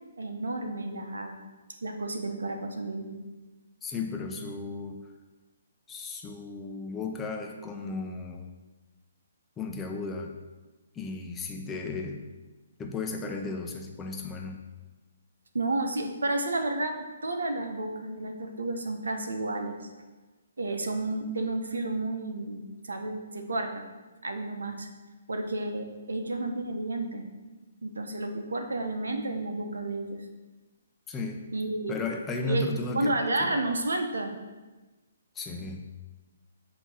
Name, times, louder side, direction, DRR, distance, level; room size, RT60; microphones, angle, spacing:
voice 1, 0.2-1.4 1.8-3.2 15.5-19.7 20.6-23.8 24.2-24.9 25.3-27.2 27.8-30.2 31.5-31.9 32.5-32.7 32.9-34.3, right 2 dB, 90° right, 5 dB, 1.0 m, -31 dB
voice 2, 3.8-5.0 5.9-8.6 9.6-10.3 10.9-12.2 12.8-14.6 31.1-31.5 31.9-33.5 35.3-35.9, left 3 dB, 15° left, 2 dB, 0.7 m, -34 dB
8.0 x 3.0 x 6.1 m, 1.2 s
hypercardioid pair, 145°, 0 cm